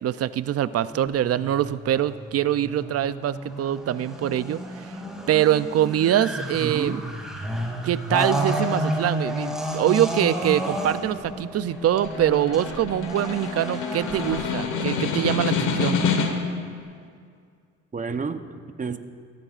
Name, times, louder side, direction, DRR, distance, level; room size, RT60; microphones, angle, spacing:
voice 1, 0.0-5.0 5.3-7.0 7.8-16.0, right 11 dB, 55° right, 15 dB, 0.5 m, -24 dB
sound 1, 0.9-14.4, equal, ahead, 2.6 m, -31 dB
voice 2, 6.6-7.1 17.9-19.0, right 5 dB, 25° right, 9 dB, 0.8 m, -30 dB
Snare drum, 11.7-16.6, left 5 dB, 90° left, 1.3 m, -27 dB
23.0 x 15.0 x 2.5 m, 2.2 s
cardioid pair, 90°, 30 cm